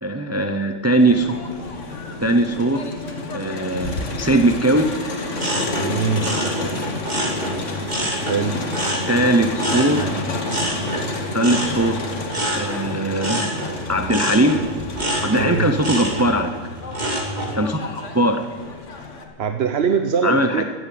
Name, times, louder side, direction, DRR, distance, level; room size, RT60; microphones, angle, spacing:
voice 1, 0.0-1.4 2.2-2.8 3.3-4.8 9.1-10.0 11.3-11.9 12.6-13.5 13.9-14.6 15.2-16.5 17.5-18.4 20.2-20.6, right 1 dB, 15° right, 5 dB, 0.6 m, -19 dB
Crowd, 1.0-19.2, left 3 dB, 80° left, 1.8 m, -30 dB
sound 1, 5.4-8.4 8.7-17.6 18.0-18.4, right 1 dB, 35° right, 2.6 m, -27 dB
voice 2, 5.8-6.3 8.3-8.6 15.4-15.7 19.4-20.6, right 6 dB, 60° right, 6 dB, 1.0 m, -22 dB
14.5 x 9.5 x 8.5 m, 1.5 s
omnidirectional pair, 1.2 m